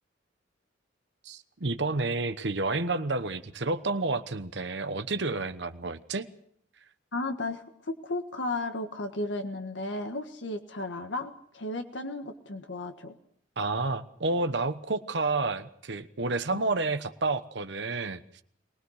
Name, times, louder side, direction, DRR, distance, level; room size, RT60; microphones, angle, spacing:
voice 1, 1.2-6.3 13.6-18.4, right 3 dB, 65° right, 10 dB, 1.1 m, -30 dB
voice 2, 7.1-13.1 16.5-16.6, left 2 dB, 75° left, 6 dB, 1.6 m, -34 dB
23.0 x 19.5 x 6.5 m, 0.67 s
head